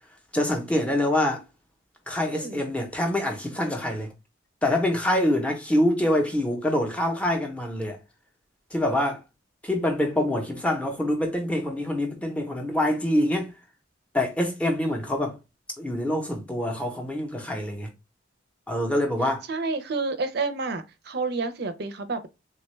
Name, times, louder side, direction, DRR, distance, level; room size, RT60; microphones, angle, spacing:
voice 1, 0.3-1.4 2.1-4.1 4.6-8.0 8.7-9.2 9.6-13.5 14.1-15.4 15.8-17.9 18.7-19.4, left 1 dB, 5° left, 0.6 m, -25 dB
voice 2, 2.3-2.7 19.5-22.3, right 3 dB, 55° right, 0.5 m, -29 dB
3.5 x 2.2 x 3.1 m
head